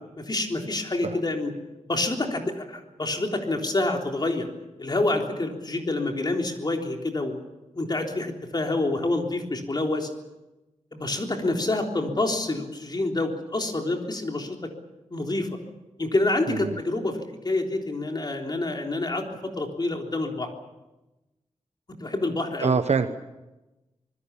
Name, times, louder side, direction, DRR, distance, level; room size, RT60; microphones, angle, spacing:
voice 1, 0.2-1.5 1.9-4.5 4.8-7.4 7.7-10.1 10.9-14.6 15.1-15.5 16.0-20.5 22.0-22.7, left 2 dB, 35° left, 2 dB, 3.6 m, -27 dB
voice 2, 16.5-16.8 22.6-23.2, right 5 dB, 65° right, 9 dB, 1.0 m, -25 dB
26.0 x 21.0 x 7.1 m, 1.0 s
wide cardioid pair, 125°, 12 cm